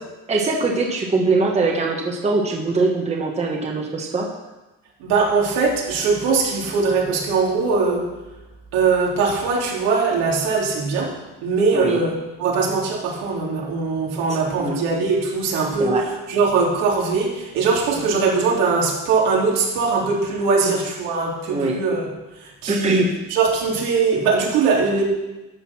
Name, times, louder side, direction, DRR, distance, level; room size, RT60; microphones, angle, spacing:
voice 1, 0.3-4.3 11.7-12.1 14.6-14.8 15.8-16.0 17.9-18.0 21.5-21.7 22.7-23.1, right 3 dB, 20° right, 0 dB, 1.3 m, -22 dB
voice 2, 5.0-8.1 8.7-11.1 11.4-16.0 16.3-22.0 22.4-23.0 23.3-25.0, right 4 dB, 80° right, -3 dB, 3.5 m, -21 dB
12.0 x 6.8 x 6.2 m, 1.1 s
cardioid pair, 135°, 34 cm